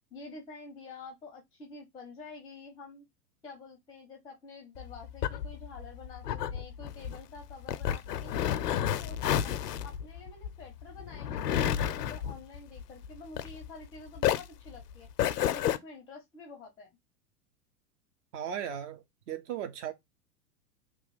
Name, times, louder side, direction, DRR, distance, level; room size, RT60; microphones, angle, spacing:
voice 1, 0.1-3.1 3.4-9.5 9.8-15.1 15.4-16.9, left 3 dB, 10° left, 0.6 m, -48 dB
sound 1, 4.7-13.9 14.2-15.8, left 10 dB, 70° left, 0.6 m, -31 dB
voice 2, 18.3-19.9, right 9 dB, 45° right, 0.9 m, -37 dB
3.0 x 2.3 x 3.9 m
figure-of-eight pair, 100°, 49 cm